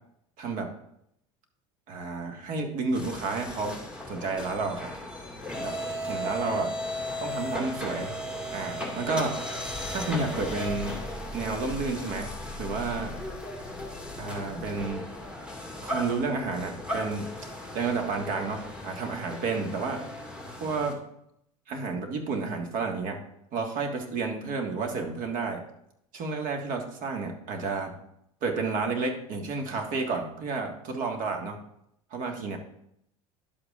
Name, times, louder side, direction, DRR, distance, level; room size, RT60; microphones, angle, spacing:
voice 1, 0.4-0.7 1.9-3.8 4.1-4.9 5.6-5.8 6.1-6.7 7.2-8.1 8.5-9.4 9.9-11.0 11.3-12.3 12.6-13.2 14.2-15.1 15.8-17.3 17.7-20.0 20.6-21.0 21.7-23.2 23.5-25.6 26.1-27.9 28.4-31.6 32.1-32.6, right 4 dB, 50° right, 3 dB, 1.8 m, -31 dB
sound 1, 2.9-20.9, left 1 dB, 5° right, 2.1 m, -36 dB
11.0 x 8.1 x 2.5 m, 0.76 s
hypercardioid pair, 85°, 17 cm